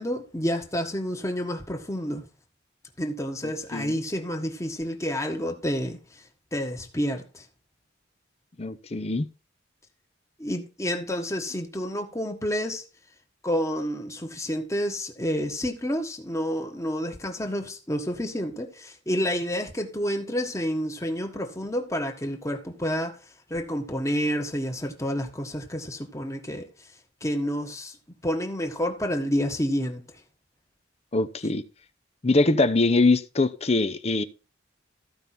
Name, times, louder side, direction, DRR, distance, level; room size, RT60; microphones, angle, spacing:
voice 1, 0.0-2.2 3.0-6.0 6.5-7.4 10.4-12.8 13.4-23.1 23.5-26.7 27.2-27.9 28.2-30.0, equal, 15° left, 1.5 m, -29 dB
voice 2, 3.4-3.9 8.6-9.3 31.1-31.6 32.2-34.2, left 2 dB, 35° left, 0.7 m, -23 dB
14.5 x 5.4 x 4.3 m
head